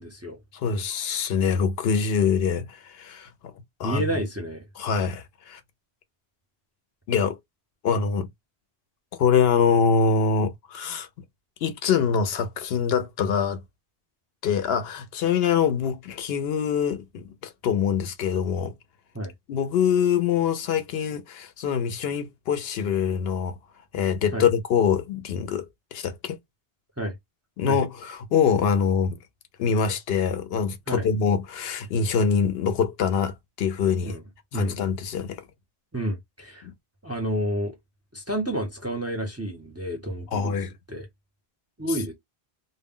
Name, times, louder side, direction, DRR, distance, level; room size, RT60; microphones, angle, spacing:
voice 1, 0.0-0.4 3.8-4.7 19.1-19.3 24.3-24.5 27.0-27.1 27.7-27.8 30.9-31.1 34.0-34.2 34.5-34.8 35.9-36.7 37.0-37.8 38.1-40.6 40.9-41.1 41.8-42.1, equal, 20° right, 0.5 m, -30 dB
voice 2, 0.5-3.3 3.8-4.0 4.8-5.6 7.1-7.4 7.8-8.3 9.2-11.1 11.6-13.6 14.4-18.7 19.5-23.6 23.9-26.4 27.6-29.2 29.6-34.1 34.5-35.4 36.6-36.7 40.3-40.7, left 6 dB, 70° left, 0.8 m, -24 dB
2.1 x 2.1 x 3.5 m
omnidirectional pair, 1.1 m